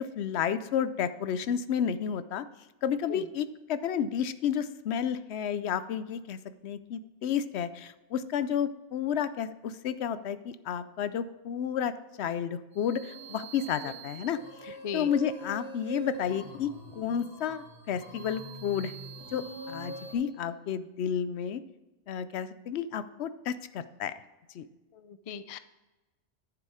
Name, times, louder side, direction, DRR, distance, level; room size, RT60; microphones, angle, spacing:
voice 1, 0.0-2.5 2.8-6.4 6.6-11.9 12.2-18.9 19.3-21.6 22.1-24.1 24.5-24.7, left 8 dB, 75° left, 13 dB, 0.8 m, -31 dB
sound 1, 12.8-20.1, right 3 dB, 20° right, 2.0 m, -44 dB
voice 2, 24.9-25.6, left 6 dB, 45° left, 13 dB, 0.4 m, -37 dB
10.5 x 6.9 x 4.8 m, 1.1 s
omnidirectional pair, 1.1 m